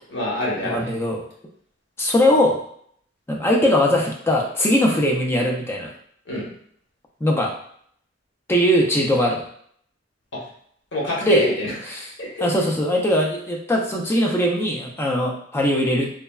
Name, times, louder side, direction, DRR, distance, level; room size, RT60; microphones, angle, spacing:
voice 1, 0.1-0.9 6.3-6.5 10.9-12.5, equal, 65° left, -4 dB, 0.9 m, -25 dB
voice 2, 0.6-1.2 2.0-2.6 3.3-5.9 7.2-7.5 8.5-9.4 11.2-11.4 11.9-12.1 12.4-16.1, left 1 dB, 15° left, 0 dB, 0.4 m, -20 dB
3.3 x 2.0 x 2.3 m, 0.64 s
head